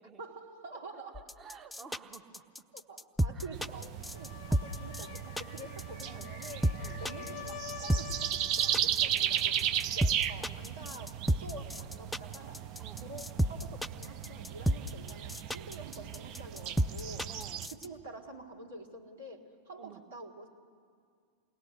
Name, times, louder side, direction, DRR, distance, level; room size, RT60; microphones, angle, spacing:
voice 1, 0.2-1.2 2.7-12.7 13.0-17.3 17.7-20.5, right 2 dB, 65° right, -1 dB, 2.3 m, -47 dB
voice 2, 0.9-2.7 3.3-3.5 6.1-6.3 6.7-7.0 10.4-10.6 12.8-13.1 17.3-17.7 19.8-20.0, right 6 dB, 25° right, 7 dB, 1.4 m, -52 dB
sound 1, 1.1-17.9, right 1 dB, ahead, 0.6 m, -31 dB
sound 2, 3.5-17.7, right 10 dB, 40° right, 0.7 m, -36 dB
sound 3, 4.0-8.9, left 14 dB, 50° left, 0.6 m, -47 dB
28.0 x 19.5 x 6.4 m, 2.1 s
figure-of-eight pair, 90°, 0 cm